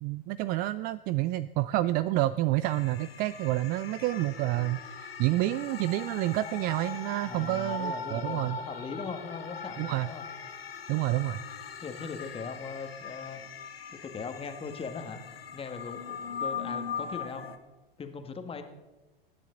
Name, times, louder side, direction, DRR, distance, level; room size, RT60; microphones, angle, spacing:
voice 1, 0.0-8.6 9.8-10.1 10.9-11.4, right 16 dB, 30° right, 16 dB, 0.4 m, -29 dB
sound 1, 2.6-17.6, left 6 dB, 80° left, 1.4 m, -40 dB
voice 2, 7.2-10.3 11.8-13.4 13.9-17.5 18.0-18.6, left 5 dB, 20° left, 6 dB, 1.7 m, -40 dB
23.0 x 10.0 x 3.9 m, 1.1 s
figure-of-eight pair, 90°, 30 cm